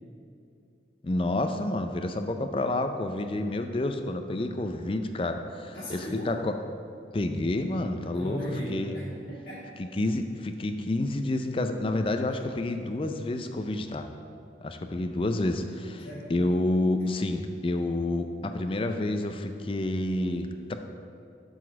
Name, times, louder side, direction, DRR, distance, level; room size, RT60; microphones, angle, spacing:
voice 1, 1.0-6.5 7.1-8.4 8.7-9.0 9.8-14.1 14.6-20.8, left 2 dB, 30° left, 7 dB, 0.4 m, -29 dB
voice 2, 5.7-6.4 8.0-9.7 12.3-12.4 16.0-16.3, equal, 55° left, -8 dB, 1.8 m, -37 dB
7.2 x 4.0 x 6.1 m, 2.5 s
head